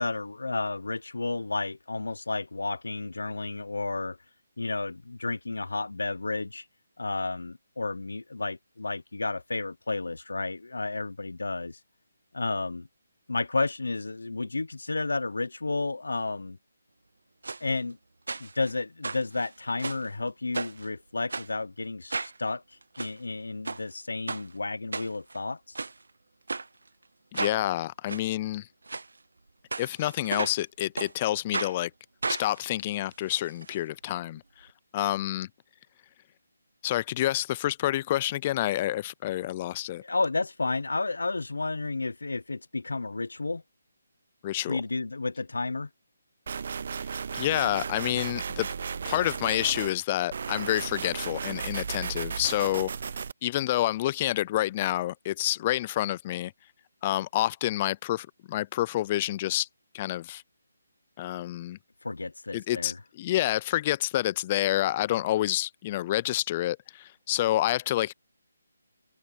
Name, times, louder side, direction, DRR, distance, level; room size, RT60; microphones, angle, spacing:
voice 1, 0.0-4.2 4.6-6.6 7.0-11.8 12.3-12.9 13.3-16.6 17.6-18.0 18.4-22.6 23.0-25.8 40.0-43.6 44.7-45.9 62.0-63.0, left 3 dB, 85° left, 0.9 m, -32 dB
sound 1, 17.4-17.6 18.3-18.7 19.0-20.1 20.5-20.9 21.3-21.5 22.1-22.4 22.8-23.1 23.6-23.8 24.3-24.4 24.9-25.4 25.7-25.9 26.5-26.7 27.3-27.6 28.1-28.2 28.9-29.1 29.7-30.6 31.0-31.1 31.5-31.7 32.2-33.8 34.0-34.1 34.4-34.5, right 3 dB, 80° right, 0.8 m, -34 dB
voice 2, 27.3-28.7 29.8-31.9 32.3-34.7 34.9-35.5 36.8-40.0 44.4-44.8 47.4-48.7 49.1-52.9 53.4-56.5 57.0-59.7 59.9-60.4 61.2-61.8 62.5-68.1, left 14 dB, 25° left, 0.5 m, -28 dB
sound 2, 46.5-49.9 50.3-53.3, right 6 dB, 50° right, 0.5 m, -35 dB
figure-of-eight pair, 160°, 0 cm